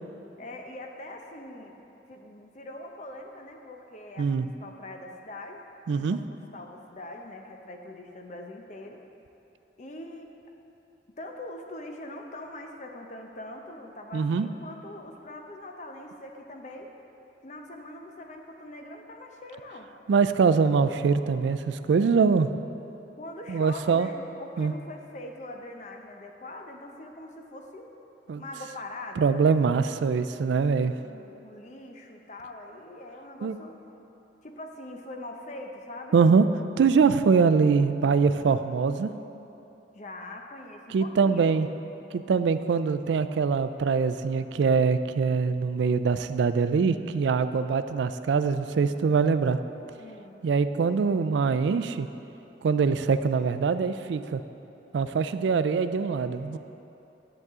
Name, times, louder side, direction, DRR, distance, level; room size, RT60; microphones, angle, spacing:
voice 1, 0.4-1.8 2.1-5.6 5.9-9.0 9.8-10.3 11.2-16.9 17.4-19.9 23.2-28.0 28.3-29.3 29.6-29.9 30.7-33.8 34.4-36.2 39.9-41.5 50.0-50.4, left 1 dB, 40° left, 3 dB, 0.7 m, -42 dB
voice 2, 5.9-6.2 14.1-14.5 20.1-22.5 23.5-24.1 24.6-24.7 28.3-28.4 29.2-30.9 33.4-33.5 36.1-36.5 36.8-39.1 40.9-41.7 42.1-49.6 50.4-52.1 52.6-54.4 54.9-56.6, right 5 dB, 80° right, 11 dB, 0.3 m, -23 dB
10.5 x 7.8 x 3.6 m, 3.0 s
head